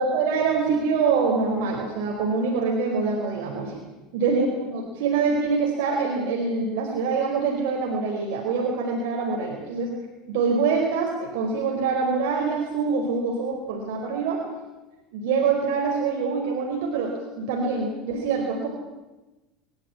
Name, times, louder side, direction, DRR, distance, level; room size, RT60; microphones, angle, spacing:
voice 1, 0.0-3.8 4.1-9.9 10.3-14.4 15.1-18.7, right 4 dB, 75° right, 0 dB, 4.9 m, -25 dB
24.0 x 13.5 x 9.9 m, 1.1 s
supercardioid pair, 110°, 0 cm